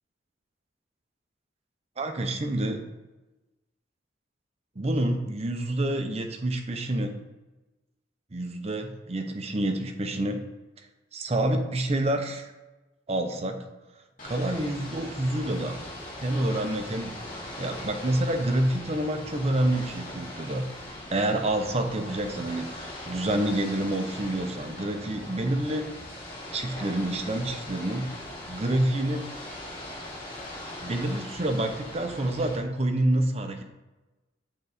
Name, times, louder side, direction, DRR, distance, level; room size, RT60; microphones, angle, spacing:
voice 1, 2.0-2.8 4.8-7.1 8.3-10.4 11.1-12.5 13.1-13.6 14.2-15.8 16.2-17.2 17.6-20.7 21.1-25.9 26.5-28.1 28.5-29.2 30.8-33.6, right 1 dB, 35° right, 5 dB, 0.7 m, -28 dB
Ocean / Boat Water vehicle, 14.2-32.6, left 1 dB, 45° left, 2.1 m, -40 dB
7.0 x 3.9 x 4.2 m, 1.1 s
head